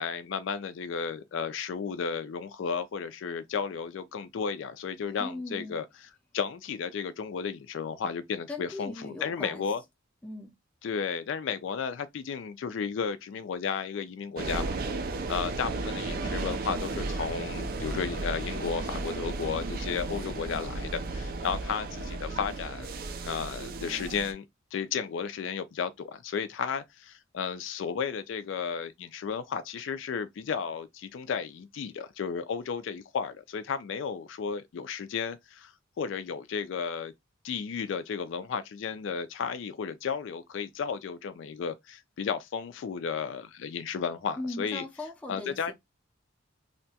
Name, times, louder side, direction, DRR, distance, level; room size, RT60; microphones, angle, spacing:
voice 1, 0.0-9.8 10.8-15.0 15.3-22.9 23.2-24.4 24.7-35.7 36.0-37.1 37.4-44.8 45.3-45.7, left 6 dB, 70° left, 0.3 m, -33 dB
voice 2, 5.2-5.8 8.5-9.7 10.2-10.5 44.4-45.7, left 2 dB, 5° left, 0.5 m, -39 dB
sound 1, 14.4-24.3, right 3 dB, 45° right, 0.4 m, -34 dB
2.8 x 2.2 x 2.7 m
head